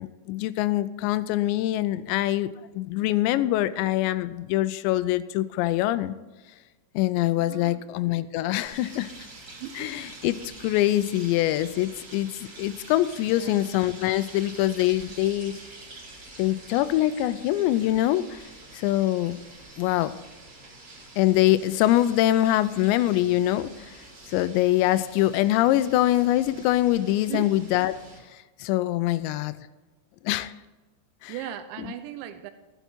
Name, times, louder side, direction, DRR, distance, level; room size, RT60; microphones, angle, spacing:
voice 1, 0.0-6.1 7.0-9.1 9.8-15.6 16.4-18.4 18.7-19.4 19.8-20.1 21.2-24.0 24.3-27.9 28.6-29.5 30.2-30.5 31.2-31.3, left 14 dB, 85° left, 14 dB, 2.7 m, -24 dB
voice 2, 7.3-7.8 9.6-9.9 13.3-13.6 27.3-27.5 31.3-32.5, right 11 dB, 90° right, 7 dB, 3.0 m, -37 dB
sound 1, 8.7-28.2, right 2 dB, 35° right, 3.8 m, -46 dB
15.0 x 8.1 x 4.4 m, 1.2 s
omnidirectional pair, 5.1 m